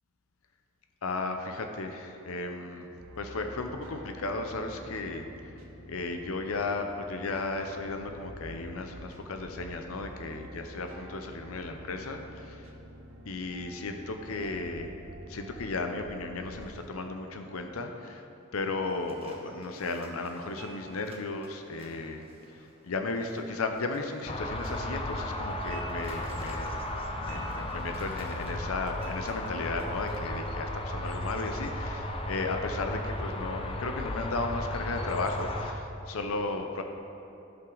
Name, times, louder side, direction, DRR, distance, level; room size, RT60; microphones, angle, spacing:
voice 1, 1.0-2.9 3.2-5.3 5.5-12.7 13.3-14.9 15.3-18.2 18.5-22.3 22.5-26.7 27.2-36.8, left 3 dB, 85° left, 5 dB, 0.6 m, -35 dB
sound 1, 3.0-16.9, equal, 80° right, 1.2 m, -47 dB
sound 2, 18.8-30.2, right 2 dB, 30° right, 1.1 m, -53 dB
sound 3, 24.3-35.7, left 1 dB, 25° left, 0.6 m, -35 dB
14.5 x 5.7 x 3.9 m, 2.9 s
head